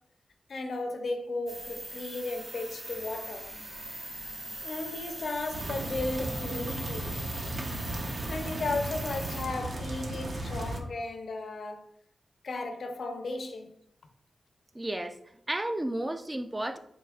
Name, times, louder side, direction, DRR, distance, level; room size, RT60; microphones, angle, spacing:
voice 1, 0.5-3.5 4.6-7.2 8.3-11.9 12.4-13.7, left 2 dB, 70° left, 0.6 m, -35 dB
sound 1, 1.5-9.4, right 1 dB, 35° right, 1.1 m, -41 dB
sound 2, 5.5-10.8, right 1 dB, 55° right, 0.7 m, -35 dB
voice 2, 14.7-15.2 15.5-16.8, right 1 dB, 20° right, 0.3 m, -32 dB
4.6 x 4.1 x 2.3 m
cardioid pair, 70°, 0 cm